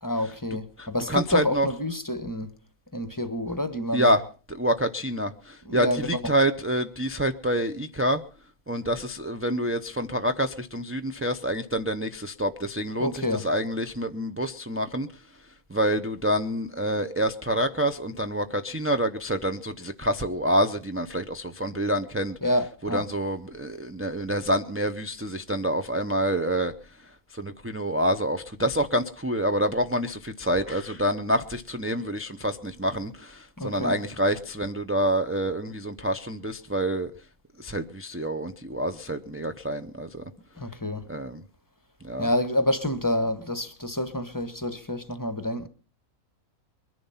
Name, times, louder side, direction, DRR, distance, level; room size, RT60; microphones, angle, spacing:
voice 1, 0.0-2.5 2.9-4.1 5.6-6.3 13.0-13.5 22.4-23.1 33.6-34.0 40.6-41.1 42.2-45.7, left 1 dB, 15° left, 1.0 m, -28 dB
voice 2, 0.8-1.7 3.9-4.2 4.5-8.2 8.7-22.4 22.9-37.1 37.6-40.2 41.1-41.4 42.0-42.3, equal, 20° right, 0.4 m, -27 dB
22.5 x 11.0 x 5.6 m
omnidirectional pair, 1.6 m